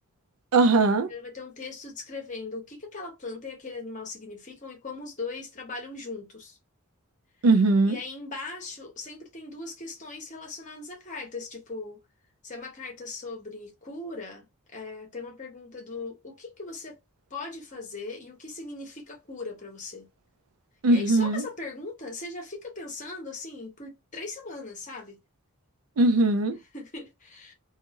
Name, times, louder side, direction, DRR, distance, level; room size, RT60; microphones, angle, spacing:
voice 1, 0.5-1.1 7.4-8.0 20.8-21.4 26.0-26.6, right 2 dB, 85° right, 0.5 m, -20 dB
voice 2, 1.1-6.6 7.8-12.0 12.4-14.4 14.7-17.0 17.3-20.1 20.9-25.2 26.7-27.5, left 3 dB, 35° left, 1.0 m, -39 dB
2.5 x 2.5 x 2.9 m
head